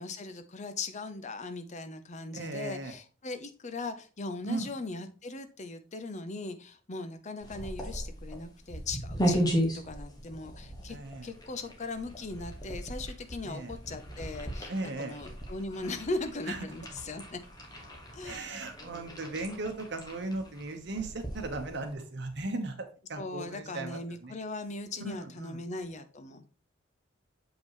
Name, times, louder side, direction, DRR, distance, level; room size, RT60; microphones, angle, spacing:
voice 1, 0.0-11.0 11.2-17.4 18.1-18.5 23.2-26.6, left 3 dB, 40° left, 10 dB, 0.7 m, -39 dB
voice 2, 2.3-2.9 4.5-4.7 10.9-11.3 13.4-13.7 14.7-15.2 16.5-16.6 18.2-24.4 25.0-25.6, right 2 dB, 65° right, 6 dB, 1.2 m, -37 dB
sound 1, 7.4-21.9, equal, 20° left, 1.6 m, -36 dB
7.0 x 5.3 x 3.1 m, 0.36 s
head